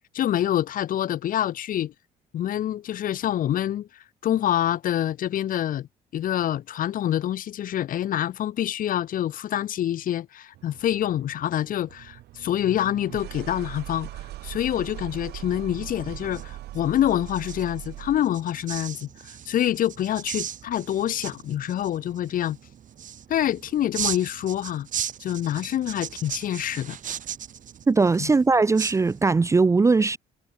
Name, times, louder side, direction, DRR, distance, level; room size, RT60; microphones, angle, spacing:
voice 1, 0.1-1.9 2.3-3.9 4.2-5.9 6.1-14.1 14.4-22.6 23.3-24.9 25.2-27.0 28.2-28.3, left 11 dB, 55° left, 0.9 m, -26 dB
sound 1, 10.5-18.4, right 15 dB, 75° right, 2.2 m, -40 dB
sound 2, 16.0-29.6, right 9 dB, 50° right, 3.3 m, -37 dB
voice 2, 27.9-30.2, right 4 dB, 15° right, 0.6 m, -20 dB
cardioid pair, 110°, 17 cm